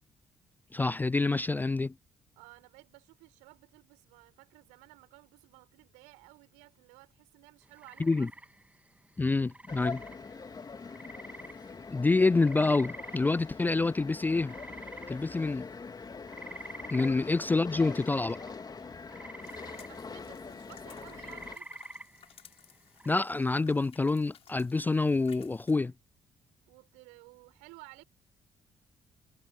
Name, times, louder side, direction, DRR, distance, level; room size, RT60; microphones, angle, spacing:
voice 1, 0.7-1.9 8.0-8.3 9.2-10.0 11.9-14.5 15.1-15.7 16.9-18.4 23.1-25.9, left 3 dB, 15° left, 0.3 m, -27 dB
voice 2, 2.4-8.3 19.6-21.8 26.7-28.0, right 29 dB, 70° right, 6.2 m, -55 dB
sound 1, 7.6-23.2, right 1 dB, 10° right, 1.8 m, -49 dB
sound 2, 9.7-21.6, left 4 dB, 30° left, 2.2 m, -43 dB
sound 3, 19.4-25.8, left 8 dB, 50° left, 3.0 m, -58 dB
figure-of-eight pair, 40°, 13 cm